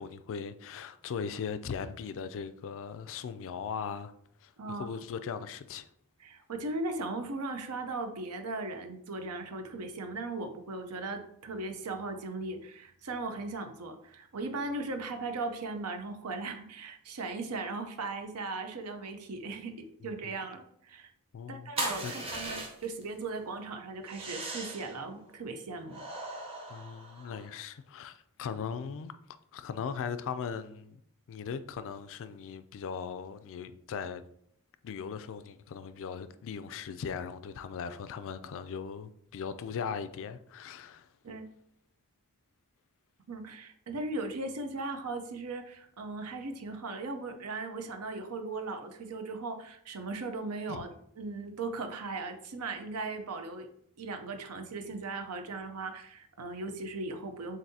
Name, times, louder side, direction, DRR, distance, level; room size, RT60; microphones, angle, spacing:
voice 1, 0.0-4.1 4.4-5.9 20.0-20.4 21.3-21.7 22.0-22.1 26.7-29.1 29.5-31.0 31.3-34.2 34.8-41.1 50.7-50.8, left 6 dB, 60° left, 0.3 m, -39 dB
voice 2, 4.6-4.9 6.2-19.7 20.0-21.1 21.5-26.0 41.2-41.5 43.3-50.9 51.2-53.7 54.0-57.6, right 3 dB, 80° right, 0.7 m, -38 dB
sound 1, 21.8-23.0 24.1-25.0 25.9-27.6, right 2 dB, 25° right, 0.9 m, -38 dB
7.3 x 2.6 x 2.7 m
head